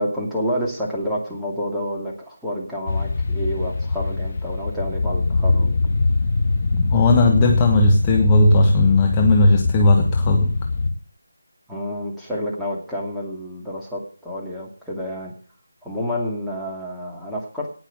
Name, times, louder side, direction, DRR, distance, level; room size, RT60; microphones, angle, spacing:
voice 1, 0.0-5.7 11.7-15.3 15.8-17.7, equal, ahead, -6 dB, 2.6 m, -29 dB
sound 1, 2.9-10.9, left 3 dB, 35° left, 2.8 m, -22 dB
voice 2, 6.7-10.5, left 2 dB, 15° left, 1 dB, 1.3 m, -17 dB
18.0 x 6.1 x 8.0 m, 0.41 s
figure-of-eight pair, 160°, 0 cm